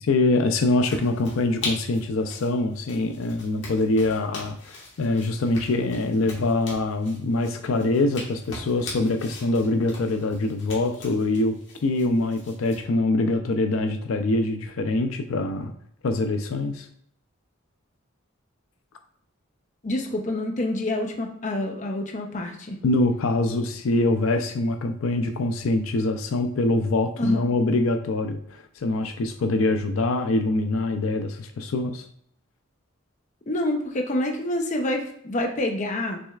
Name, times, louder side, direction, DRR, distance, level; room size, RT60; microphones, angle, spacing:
voice 1, 0.0-11.6 11.8-15.7 16.0-16.9 22.8-32.1, left 2 dB, 90° left, 6 dB, 0.4 m, -24 dB
sound 1, 0.8-12.8, left 2 dB, 60° left, 1.5 m, -41 dB
voice 2, 19.8-22.8 27.2-27.4 33.5-36.2, left 1 dB, 35° left, 2 dB, 0.6 m, -27 dB
6.1 x 3.2 x 2.4 m, 0.67 s
head